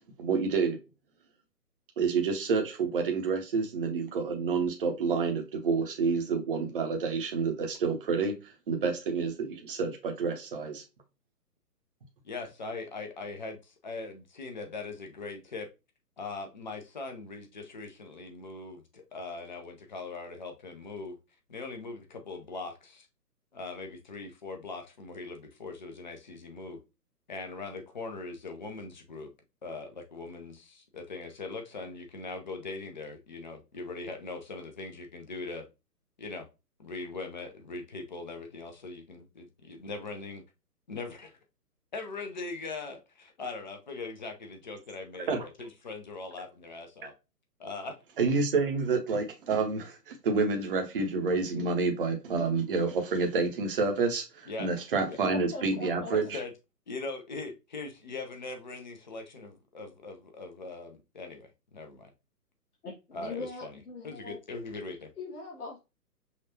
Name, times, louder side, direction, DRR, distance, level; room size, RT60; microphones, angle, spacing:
voice 1, 0.2-0.8 2.0-8.4 8.7-10.8 45.3-45.5 48.2-56.4, right 4 dB, 35° right, 0.8 m, -28 dB
voice 2, 12.2-15.7 16.2-21.2 21.5-23.1 23.5-26.8 27.3-29.3 29.6-35.6 36.2-36.5 36.8-40.4 40.9-41.4 41.9-47.1 47.6-47.9 54.5-54.7 55.1-55.2 56.1-56.5 56.9-62.1 63.1-63.8 64.0-65.1, left 3 dB, 30° left, 0.6 m, -41 dB
voice 3, 55.3-56.1 62.8-64.4 65.2-65.8, left 3 dB, 65° left, 1.3 m, -40 dB
5.7 x 2.4 x 2.9 m
figure-of-eight pair, 135°, 48 cm